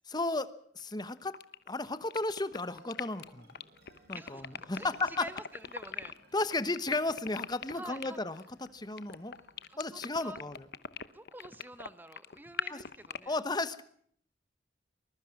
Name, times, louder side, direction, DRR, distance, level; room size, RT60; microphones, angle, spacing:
voice 1, 0.1-1.4 1.7-3.5 4.1-5.3 6.3-9.4 9.8-10.7 12.7-12.8 13.3-13.8, left 2 dB, 25° left, 13 dB, 1.2 m, -34 dB
sound 1, 0.8-13.2, left 7 dB, 60° left, 1.0 m, -41 dB
sound 2, 2.5-10.8, right 2 dB, 60° right, 6.7 m, -64 dB
voice 2, 4.1-6.1 7.7-8.2 9.7-10.4 11.1-13.4, right 1 dB, 10° right, 13 dB, 1.2 m, -48 dB
24.0 x 21.5 x 6.0 m, 0.62 s
head